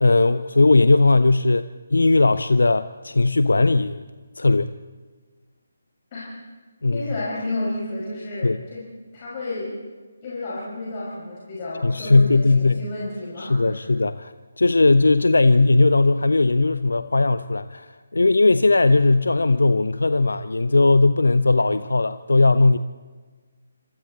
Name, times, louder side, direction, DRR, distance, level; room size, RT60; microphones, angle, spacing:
voice 1, 0.0-1.7 1.9-4.0 4.4-4.7 6.8-7.0 8.4-8.6 11.8-12.8 13.4-22.8, left 3 dB, 70° left, 13 dB, 0.6 m, -18 dB
voice 2, 6.9-8.8 9.1-9.7 10.2-13.9, left 2 dB, 30° left, -7 dB, 5.7 m, -31 dB
26.5 x 26.0 x 4.2 m, 1.4 s
figure-of-eight pair, 145°, 0 cm